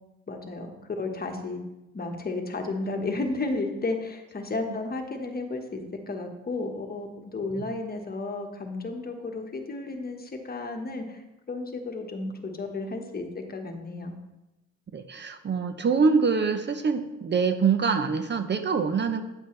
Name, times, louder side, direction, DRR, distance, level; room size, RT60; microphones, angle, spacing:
voice 1, 0.3-1.6 1.9-11.2 11.5-14.1, left 3 dB, 30° left, 4 dB, 1.3 m, -33 dB
voice 2, 14.9-19.2, right 5 dB, 35° right, 8 dB, 0.6 m, -25 dB
9.6 x 7.7 x 3.2 m, 0.99 s
cardioid pair, 90°, 30 cm